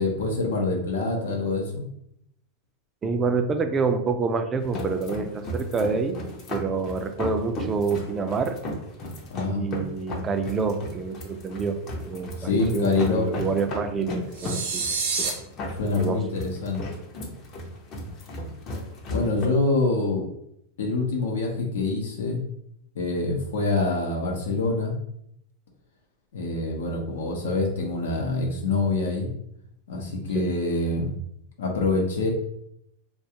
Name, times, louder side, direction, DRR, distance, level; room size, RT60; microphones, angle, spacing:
voice 1, 0.0-1.8 9.3-9.7 12.3-13.3 15.8-16.8 19.1-20.3 20.8-22.4 22.9-24.9 26.3-29.3 29.9-31.1 31.6-32.3, left 3 dB, 90° left, 1 dB, 0.7 m, -25 dB
voice 2, 3.0-6.2 6.5-8.6 9.5-11.8 12.1-14.8 15.2-15.3 16.0-16.2 30.4-30.5, right 4 dB, 20° right, 6 dB, 0.3 m, -27 dB
sound 1, 4.6-19.5, left 1 dB, 35° left, 0.6 m, -35 dB
sound 2, 14.3-15.3, right 4 dB, 80° right, 0.7 m, -27 dB
2.4 x 2.2 x 2.8 m, 0.75 s
supercardioid pair, 135°, 0 cm